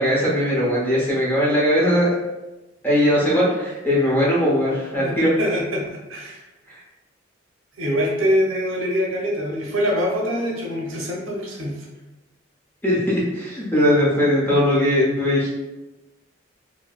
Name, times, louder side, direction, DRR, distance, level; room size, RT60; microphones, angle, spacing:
voice 1, 0.0-2.1 2.8-5.3 6.3-6.4 12.8-15.5, equal, 10° left, -6 dB, 0.8 m, -19 dB
voice 2, 5.0-6.4 7.8-11.9, equal, 80° right, -1 dB, 0.7 m, -24 dB
4.3 x 2.1 x 2.3 m, 1.1 s
head